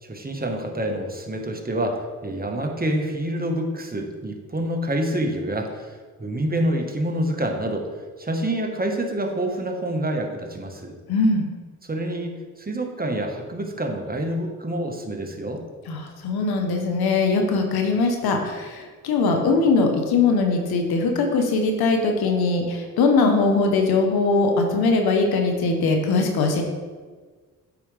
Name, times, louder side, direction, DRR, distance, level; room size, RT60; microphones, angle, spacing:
voice 1, 0.0-7.9 8.2-10.9 11.8-15.6, right 1 dB, 25° right, 2 dB, 1.3 m, -27 dB
voice 2, 11.1-11.4 15.9-26.6, left 3 dB, 90° left, 4 dB, 1.0 m, -21 dB
8.4 x 5.0 x 3.3 m, 1.4 s
supercardioid pair, 50°, 36 cm